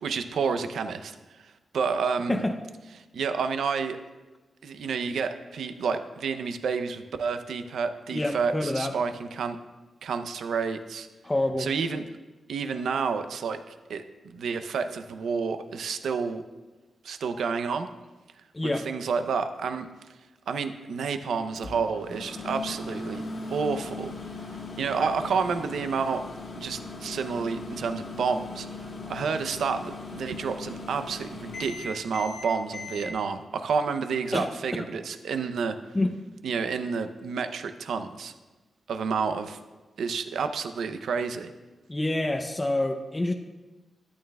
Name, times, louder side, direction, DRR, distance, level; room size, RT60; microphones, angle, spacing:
voice 1, 0.0-2.4 3.1-4.0 4.6-9.6 10.0-11.1 11.6-12.0 12.5-13.6 13.9-16.4 17.0-17.9 18.6-19.9 20.5-24.1 24.8-26.2 26.6-28.7 29.1-35.8 36.4-38.3 38.9-39.6 40.0-41.5, right 5 dB, 85° right, 9 dB, 0.6 m, -30 dB
voice 2, 8.1-8.9 11.2-11.7 18.5-18.9 34.3-34.5 35.9-36.2 41.9-43.3, left 1 dB, 20° left, 5 dB, 0.6 m, -27 dB
Microwave oven, 21.6-33.1, left 3 dB, 65° left, 1.6 m, -39 dB
12.5 x 8.8 x 2.3 m, 1.2 s
cardioid pair, 85°, 0 cm